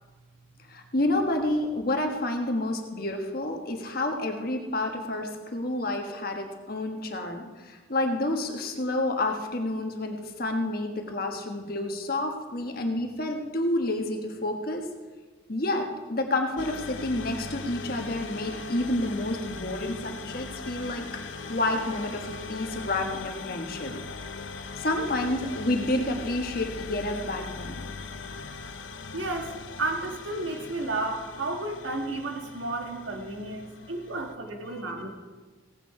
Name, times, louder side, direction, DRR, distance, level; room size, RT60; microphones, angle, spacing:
voice 1, 0.7-14.9 15.5-21.0 21.5-23.9 24.8-27.8 34.7-35.1, left 1 dB, 50° left, 3 dB, 1.4 m, -29 dB
sound 1, 16.6-34.3, left 4 dB, 75° left, 0.7 m, -40 dB
voice 2, 29.1-35.1, right 2 dB, 80° right, 2 dB, 1.7 m, -32 dB
16.5 x 9.2 x 4.8 m, 1.3 s
head